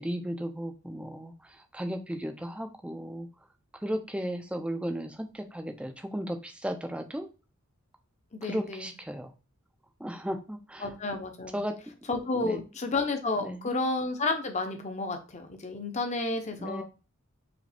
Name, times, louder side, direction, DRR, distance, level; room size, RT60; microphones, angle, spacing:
voice 1, 0.0-3.3 3.8-7.3 8.4-9.3 10.0-10.9 11.5-11.8 12.3-12.6 13.4-13.8 16.6-16.8, equal, 5° right, 6 dB, 0.5 m, -35 dB
voice 2, 8.3-8.9 10.8-11.6 12.1-16.8, left 3 dB, 30° left, 5 dB, 0.8 m, -31 dB
4.9 x 3.2 x 3.4 m, 0.32 s
head